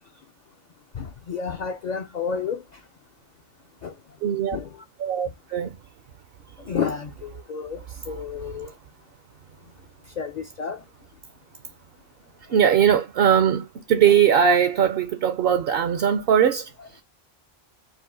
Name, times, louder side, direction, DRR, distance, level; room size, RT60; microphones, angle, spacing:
voice 1, 1.3-2.6 4.5-4.6 6.7-7.1 7.5-7.8 8.1-8.7 10.2-10.8, left 6 dB, 55° left, 0.5 m, -29 dB
voice 2, 4.2-4.6 5.0-5.7 12.5-16.7, right 8 dB, 65° right, 0.7 m, -20 dB
5.3 x 2.1 x 3.7 m
omnidirectional pair, 1.1 m